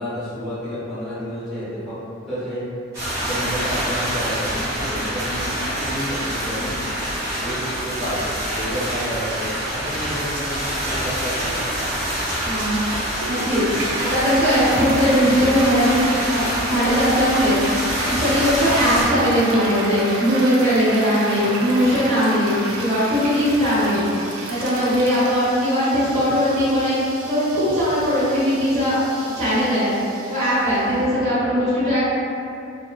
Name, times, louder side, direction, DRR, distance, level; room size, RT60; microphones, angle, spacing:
voice 1, 0.0-1.9 2.3-2.6 3.2-6.7 7.4-7.6 7.8-8.2 8.5-11.7 22.7-22.8, equal, ahead, -14 dB, 0.8 m, -30 dB
sound 1, 2.9-19.0, equal, 15° right, 1.3 m, -26 dB
voice 2, 12.4-12.8 13.2-17.6 18.0-24.0 24.5-27.0 27.3-29.0 29.3-29.9 30.3-32.0, equal, 35° right, -12 dB, 1.0 m, -19 dB
Toilet flush, 13.2-31.1, right 2 dB, 80° right, 0.4 m, -32 dB
2.8 x 2.2 x 2.3 m, 2.6 s
head